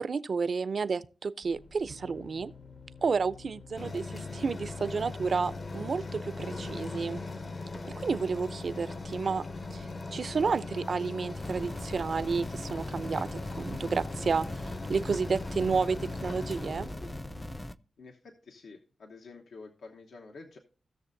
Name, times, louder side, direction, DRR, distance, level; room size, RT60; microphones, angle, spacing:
voice 1, 0.0-2.5 3.0-7.2 8.0-9.4 9.7-14.5 14.9-16.9, right 5 dB, 60° right, 0.5 m, -31 dB
sound 1, 1.4-17.6, left 4 dB, 65° left, 1.3 m, -52 dB
sound 2, 3.8-17.2, left 3 dB, 40° left, 0.8 m, -40 dB
sound 3, 11.3-17.7, left 1 dB, 10° left, 0.4 m, -40 dB
voice 2, 18.0-20.6, left 3 dB, 85° left, 1.1 m, -49 dB
17.0 x 6.5 x 2.6 m
cardioid pair, 80°, 0 cm